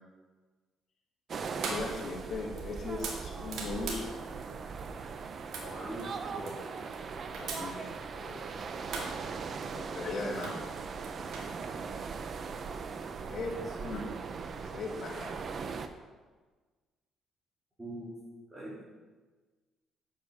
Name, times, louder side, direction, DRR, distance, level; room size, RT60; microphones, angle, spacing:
sound 1, 1.3-15.9, right 5 dB, 45° right, 0.8 m, -40 dB
sound 2, 1.3-11.5, right 4 dB, 70° right, 2.0 m, -44 dB
voice 1, 1.6-4.0 7.3-8.4 9.7-10.6 13.2-13.5 13.8-14.0 14.7-15.4, left 3 dB, 50° left, -1 dB, 2.5 m, -38 dB
voice 2, 5.6-6.6 7.6-7.9 13.5-13.7 17.8-18.1 18.5-18.8, right 1 dB, 15° right, -9 dB, 3.2 m, -43 dB
8.8 x 7.6 x 6.3 m, 1.4 s
cardioid pair, 100°, 0 cm